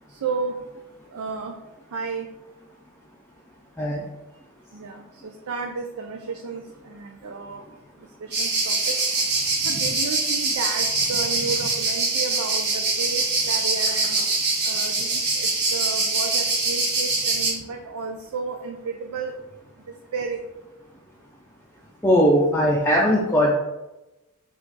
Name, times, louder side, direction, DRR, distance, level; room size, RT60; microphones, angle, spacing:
voice 1, 0.2-0.5 1.1-1.5 1.9-2.3 4.7-5.0 5.5-7.6 8.2-9.0 9.6-14.2 14.6-19.3 20.1-20.4, right 4 dB, 85° right, 3 dB, 0.4 m, -32 dB
sound 1, 8.3-17.5, right 3 dB, 50° right, 1.1 m, -23 dB
voice 2, 22.0-23.5, equal, 10° left, -4 dB, 0.4 m, -19 dB
4.6 x 2.5 x 3.9 m, 1.0 s
head